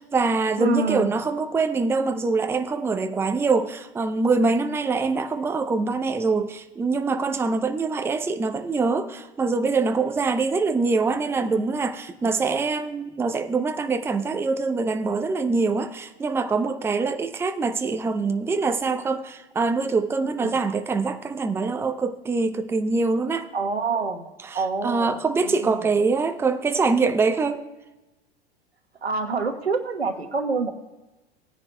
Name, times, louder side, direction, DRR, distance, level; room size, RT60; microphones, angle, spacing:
voice 1, 0.0-23.5 24.5-27.6, right 4 dB, 10° right, 0.6 m, -24 dB
voice 2, 0.6-1.1 20.4-20.6 23.5-24.3 24.5-25.2 25.4-25.9 29.0-30.7, right 4 dB, 90° right, 1.2 m, -26 dB
19.0 x 9.6 x 2.2 m
figure-of-eight pair, 90°, 30 cm